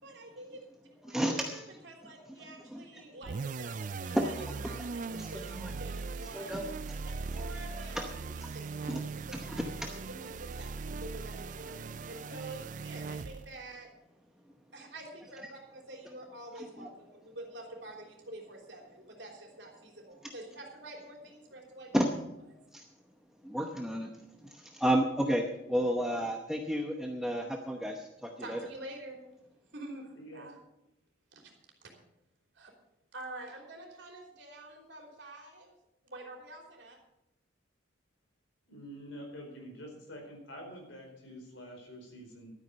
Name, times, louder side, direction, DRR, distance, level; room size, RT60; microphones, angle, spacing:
voice 1, 0.0-0.6 0.9-4.3 4.6-6.7 7.0-13.9 14.7-21.9 22.5-22.6 28.4-29.2 29.7-30.6 31.3-31.5 31.8-31.9 32.5-32.7 33.1-35.8 36.0-37.0, right 2 dB, 60° right, 1 dB, 3.4 m, -47 dB
voice 2, 1.1-1.6 2.7-2.8 4.1-4.3 4.6-4.9 5.1-5.7 6.3-7.0 7.3-7.4 7.9-8.1 8.4-8.5 8.9-9.0 9.3-9.9 16.6-16.9 20.2-20.3 21.9-22.1 22.7-22.8 23.4-24.1 24.5-28.6, equal, 5° right, 2 dB, 0.8 m, -32 dB
sound 1, 3.2-13.6, right 4 dB, 40° right, 0.4 m, -40 dB
voice 3, 30.1-30.5 38.7-42.5, equal, 70° left, 1 dB, 4.6 m, -47 dB
12.5 x 9.6 x 6.7 m, 0.86 s
head